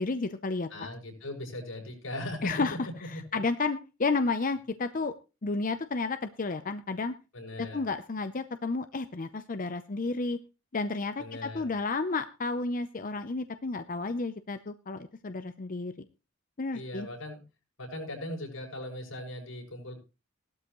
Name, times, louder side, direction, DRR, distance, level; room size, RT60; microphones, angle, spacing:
voice 1, 0.0-0.9 2.4-2.8 3.3-5.1 5.4-7.1 7.6-10.4 10.7-16.1 16.6-17.1, left 3 dB, 40° left, 10 dB, 0.6 m, -31 dB
voice 2, 0.7-2.6 3.1-3.2 7.3-7.8 11.2-11.7 16.7-17.4 17.8-20.0, left 1 dB, 90° left, 0 dB, 6.9 m, -39 dB
17.0 x 12.5 x 3.1 m, 0.30 s
head